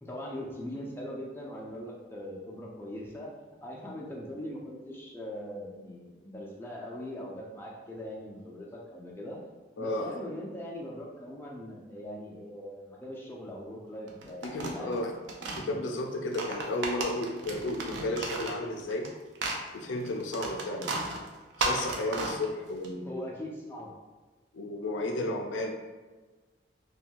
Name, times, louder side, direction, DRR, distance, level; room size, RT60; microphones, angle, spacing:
voice 1, 0.0-3.3 3.6-9.4 9.8-14.4 14.7-15.0 15.4-15.8 23.0-23.9, left 1 dB, 10° left, -4 dB, 0.4 m, -41 dB
voice 2, 9.8-10.2 14.4-15.1 15.5-19.1 19.7-21.0 21.6-23.3 24.5-25.7, left 1 dB, 80° left, 3 dB, 0.4 m, -33 dB
sound 1, 14.1-15.6 16.2-19.1 19.4-22.9, right 3 dB, 75° right, 0.4 m, -34 dB
2.5 x 2.2 x 2.8 m, 1.3 s
head